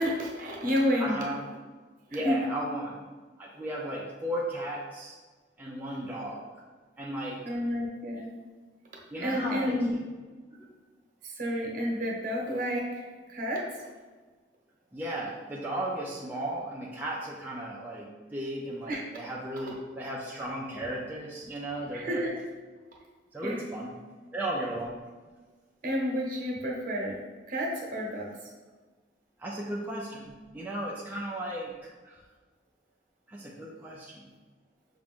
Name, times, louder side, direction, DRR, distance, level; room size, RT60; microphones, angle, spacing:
voice 1, 0.0-1.2 2.1-2.4 7.4-8.6 9.2-10.0 11.2-13.6 18.9-19.0 19.6-19.7 21.9-22.3 23.4-23.6 25.8-27.2 27.5-28.3, equal, 50° right, -2 dB, 1.0 m, -30 dB
voice 2, 1.0-1.4 2.1-3.0 3.4-5.2 5.6-6.5 7.0-7.4 9.1-10.0 14.9-22.3 23.3-24.0 24.3-25.0 29.4-31.7 32.0-32.2 33.3-34.3, right 1 dB, 10° right, -5 dB, 0.4 m, -35 dB
5.9 x 2.5 x 3.5 m, 1.4 s
head